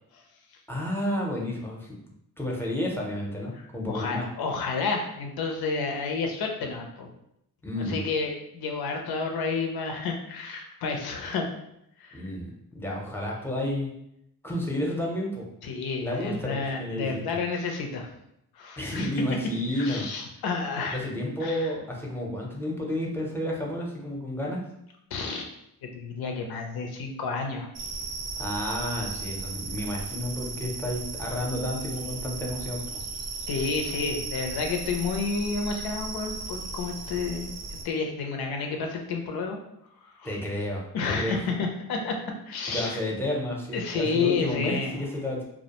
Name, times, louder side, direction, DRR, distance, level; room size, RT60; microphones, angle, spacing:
voice 1, 0.7-1.9 2.4-4.3 7.6-8.0 12.1-13.9 14.4-15.5 16.0-17.2 18.8-20.1 20.9-24.6 28.4-32.8 40.2-41.4 42.7-45.4, left 1 dB, 5° left, -2 dB, 0.6 m, -31 dB
voice 2, 3.5-7.1 7.8-11.5 12.0-12.3 15.6-18.1 18.6-19.1 19.8-21.0 21.4-21.7 25.1-25.5 25.8-27.7 33.5-37.5 37.8-39.6 40.2-40.3 40.9-42.2 42.5-43.0 43.7-45.0, left 4 dB, 90° left, 3 dB, 0.5 m, -30 dB
sound 1, 27.7-37.8, right 3 dB, 45° right, 0.5 m, -36 dB
2.3 x 2.1 x 2.8 m, 0.78 s
cardioid pair, 95°, 36 cm